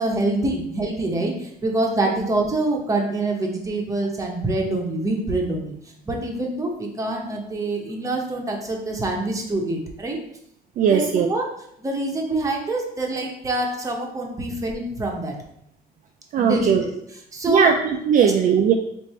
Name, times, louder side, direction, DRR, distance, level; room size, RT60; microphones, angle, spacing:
voice 1, 0.0-5.8 6.0-10.2 10.8-11.0 11.3-11.4 11.8-15.3 16.4-16.9 17.3-17.7 18.2-18.3, right 2 dB, 20° right, 0 dB, 0.8 m, -25 dB
voice 2, 10.8-11.3 16.3-16.8 17.5-18.7, right 7 dB, 50° right, 3 dB, 0.4 m, -18 dB
3.2 x 2.6 x 4.2 m, 0.74 s
cardioid pair, 110°, 17 cm